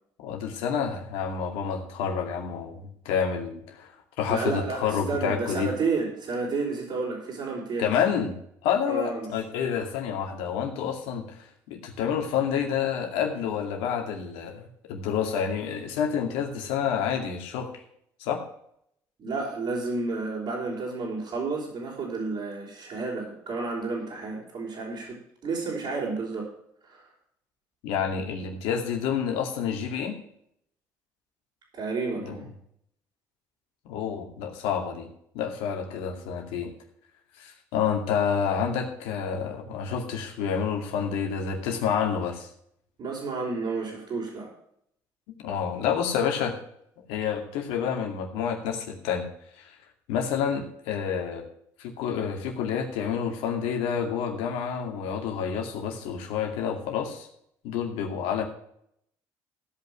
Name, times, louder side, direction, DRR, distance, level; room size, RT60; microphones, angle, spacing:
voice 1, 0.2-3.9 4.2-5.7 7.8-8.4 8.6-17.8 18.2-18.4 27.8-30.2 32.2-32.4 33.9-35.1 35.3-36.7 37.4-42.5 45.4-46.6 47.1-49.3 49.6-49.8 50.1-51.4 51.8-57.3 57.6-58.4, left 7 dB, 80° left, 3 dB, 2.3 m, -29 dB
voice 2, 4.3-7.9 8.9-9.3 19.2-26.5 26.8-27.0 31.7-32.5 43.0-44.5, right 4 dB, 60° right, -6 dB, 4.5 m, -31 dB
15.5 x 5.6 x 6.1 m, 0.71 s
hypercardioid pair, 65°, 10 cm